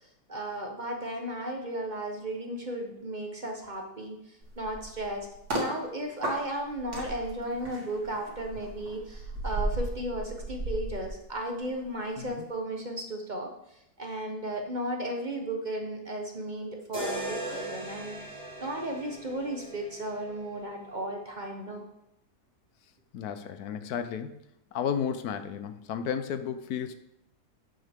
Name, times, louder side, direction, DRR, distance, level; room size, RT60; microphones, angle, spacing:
voice 1, 0.3-5.3 5.5-18.2 18.6-21.8, right 1 dB, 35° right, 2 dB, 1.0 m, -35 dB
sound 1, 4.4-5.7 6.2-11.8 12.1-12.4, right 1 dB, 80° right, 2.7 m, -35 dB
sound 2, 16.9-21.0, right 1 dB, 55° right, 4.6 m, -39 dB
voice 2, 23.1-24.3 24.7-26.9, left 8 dB, 80° left, 10 dB, 1.2 m, -33 dB
10.5 x 7.4 x 3.6 m, 0.82 s
omnidirectional pair, 1.6 m